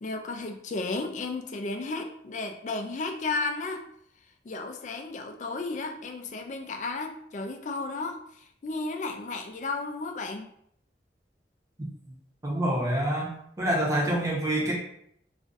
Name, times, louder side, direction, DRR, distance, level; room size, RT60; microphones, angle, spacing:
voice 1, 0.0-3.9 4.4-10.5, left 3 dB, 40° left, 4 dB, 0.3 m, -33 dB
voice 2, 12.4-14.7, right 1 dB, 20° right, -4 dB, 0.8 m, -27 dB
2.5 x 2.3 x 3.8 m, 0.69 s
head